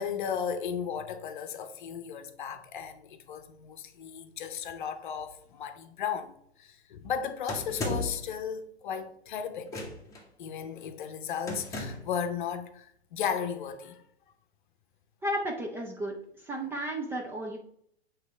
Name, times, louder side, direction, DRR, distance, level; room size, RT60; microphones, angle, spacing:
voice 1, 0.0-9.9 10.4-14.0, left 7 dB, 50° left, 0.9 m, -35 dB
sound 1, 7.5-8.3 9.7-10.2 11.5-12.2, left 2 dB, 10° left, 1.2 m, -35 dB
voice 2, 15.2-16.1 16.4-17.6, right 1 dB, 5° right, 0.5 m, -33 dB
8.2 x 3.2 x 4.7 m
figure-of-eight pair, 105°, 32 cm